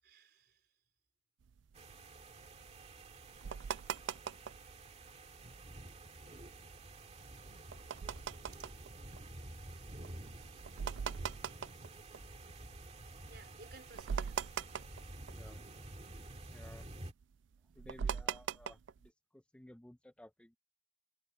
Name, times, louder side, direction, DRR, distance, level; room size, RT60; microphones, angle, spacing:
voice 1, 0.0-0.8 2.7-3.9 7.9-8.1 8.5-8.7 9.7-10.7 13.3-14.7, right 3 dB, 55° right, 4.6 m, -61 dB
sound 1, 1.5-4.7 5.1-5.2 5.4-5.7 6.2-12.8 13.3-13.4 13.7-19.1, right 7 dB, 75° right, 0.4 m, -41 dB
sound 2, 1.7-17.1, right 2 dB, 35° right, 2.0 m, -51 dB
voice 2, 15.3-15.9 16.5-16.9 17.7-20.6, left 1 dB, 5° left, 0.4 m, -57 dB
head